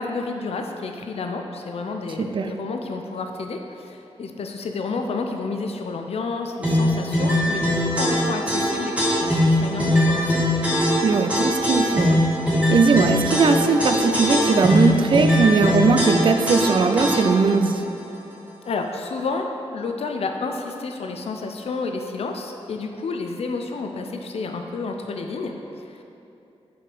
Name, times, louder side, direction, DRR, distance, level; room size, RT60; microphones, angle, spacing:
voice 1, 0.0-10.4 18.6-26.0, left 3 dB, 70° left, 4 dB, 0.5 m, -30 dB
voice 2, 2.2-2.5 11.0-12.2 12.7-17.8, right 4 dB, 50° right, 7 dB, 0.4 m, -19 dB
sound 1, 6.6-17.5, equal, 10° right, 1.5 m, -21 dB
5.9 x 4.8 x 5.4 m, 2.8 s
wide cardioid pair, 160°, 11 cm